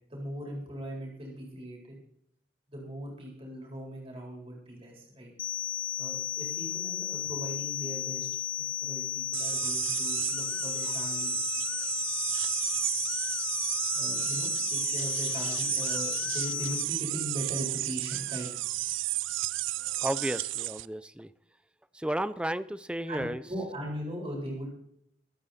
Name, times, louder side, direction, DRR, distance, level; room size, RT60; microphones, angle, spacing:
voice 1, 0.1-2.0 2.7-5.3 6.0-8.3 8.8-11.9 13.9-18.5 23.1-24.7, equal, 30° right, -1 dB, 4.3 m, -39 dB
sound 1, 5.4-16.8, left 11 dB, 45° left, 1.3 m, -34 dB
sound 2, 9.3-20.9, right 17 dB, 90° right, 0.4 m, -32 dB
voice 2, 20.0-21.3 21.9-23.4, right 1 dB, 5° right, 15 dB, 0.5 m, -33 dB
23.5 x 8.8 x 4.3 m, 0.71 s
head